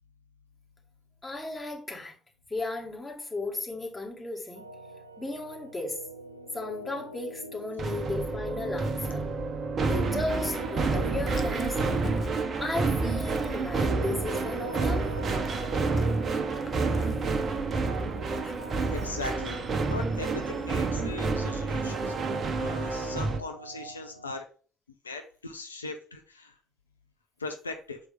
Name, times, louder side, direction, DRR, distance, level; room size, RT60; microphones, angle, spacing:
voice 1, 1.2-2.1 2.5-4.6 5.2-6.0 6.5-9.2 9.9-11.8 12.6-15.1 16.9-17.0, left 2 dB, 20° left, -1 dB, 2.3 m, -35 dB
sound 1, 4.5-24.4, right 2 dB, 90° right, 0.4 m, -45 dB
sound 2, 7.8-23.4, right 3 dB, 45° right, 0.9 m, -29 dB
Dog, 10.1-22.2, left 6 dB, 40° left, 0.9 m, -47 dB
voice 2, 18.9-19.6 19.9-24.4 25.0-26.5 27.4-28.0, left 3 dB, 85° left, 6 dB, 0.4 m, -39 dB
6.7 x 4.6 x 3.5 m, 0.41 s
figure-of-eight pair, 50°, 0 cm